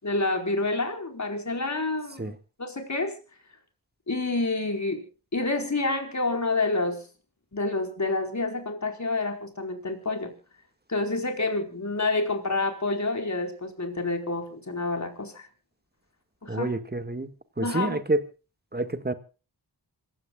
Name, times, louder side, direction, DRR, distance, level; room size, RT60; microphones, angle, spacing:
voice 1, 0.0-3.2 4.1-5.0 5.3-7.0 7.5-10.3 10.9-15.5 16.4-16.7 17.6-18.0, left 2 dB, 45° left, 4 dB, 4.7 m, -28 dB
voice 2, 16.5-17.3 17.6-18.2 18.7-19.1, right 2 dB, 25° right, 9 dB, 2.0 m, -28 dB
27.0 x 16.0 x 2.4 m, 0.33 s
wide cardioid pair, 60°, 39 cm